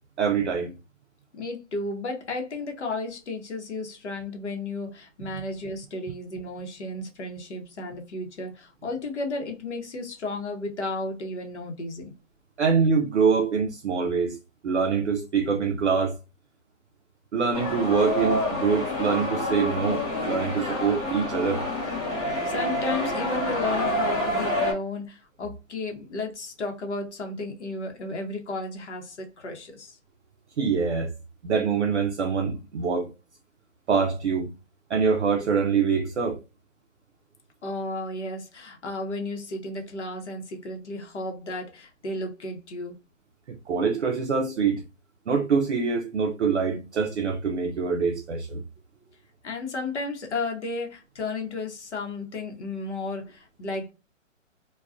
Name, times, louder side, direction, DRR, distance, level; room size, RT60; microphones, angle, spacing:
voice 1, 0.2-0.7 12.6-14.4 14.6-16.2 17.3-21.6 30.6-31.1 31.4-33.1 33.9-34.5 34.9-36.4 43.5-44.8 45.3-48.6, right 5 dB, 60° right, 0.5 m, -24 dB
voice 2, 1.3-12.1 22.2-30.0 37.6-42.9 49.4-53.9, left 2 dB, 60° left, 0.8 m, -33 dB
sound 1, 17.5-24.7, left 1 dB, 30° left, 0.9 m, -28 dB
2.3 x 2.2 x 2.4 m
hypercardioid pair, 180°, 39 cm